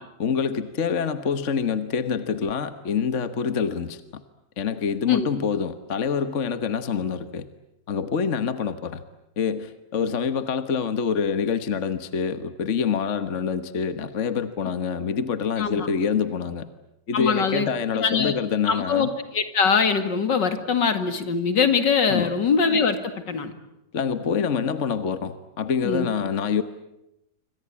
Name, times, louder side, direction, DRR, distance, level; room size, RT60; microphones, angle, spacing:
voice 1, 0.2-4.2 4.6-7.5 7.9-9.0 9.4-16.7 17.1-19.1 22.1-22.4 23.9-26.6, left 6 dB, 40° left, 11 dB, 1.4 m, -26 dB
voice 2, 17.1-17.7 17.9-18.3 18.7-23.5 25.8-26.1, left 5 dB, 60° left, 9 dB, 2.6 m, -22 dB
26.5 x 25.5 x 8.5 m, 0.86 s
omnidirectional pair, 2.2 m